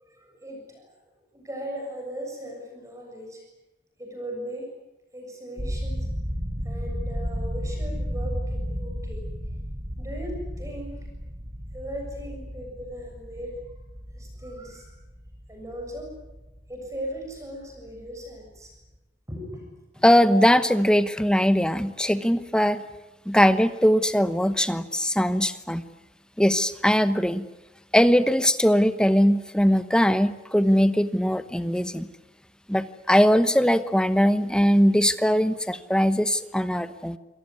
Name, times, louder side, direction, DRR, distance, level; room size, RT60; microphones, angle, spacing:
voice 1, 0.1-0.9 1.3-3.4 4.0-4.7 5.1-6.1 6.6-9.2 10.0-11.1 11.7-13.6 14.1-14.9 15.5-16.1 16.7-18.7 19.3-20.0, equal, 20° right, 2 dB, 7.1 m, -38 dB
sound 1, 5.6-17.4 17.7-18.1 18.4-18.6, equal, 50° right, 6.3 m, -33 dB
voice 2, 20.0-22.8 23.3-25.8 26.4-27.5 27.9-32.1 32.7-37.2, equal, 5° left, 12 dB, 1.0 m, -21 dB
27.5 x 18.5 x 9.7 m, 0.99 s
head